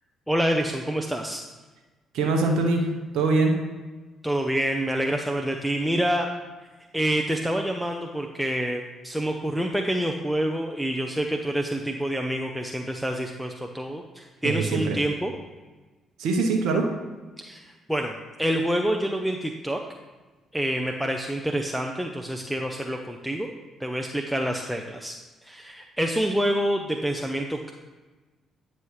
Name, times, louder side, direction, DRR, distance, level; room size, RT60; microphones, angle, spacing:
voice 1, 0.3-1.4 4.2-6.3 6.9-15.3 17.4-19.8 20.5-23.5 23.8-25.1 25.4-27.7, right 1 dB, ahead, 2 dB, 0.7 m, -27 dB
voice 2, 2.1-3.6 14.4-15.0 16.2-16.9, right 3 dB, 70° right, 2 dB, 0.9 m, -23 dB
9.4 x 5.4 x 3.2 m, 1.3 s
hypercardioid pair, 50°, 0 cm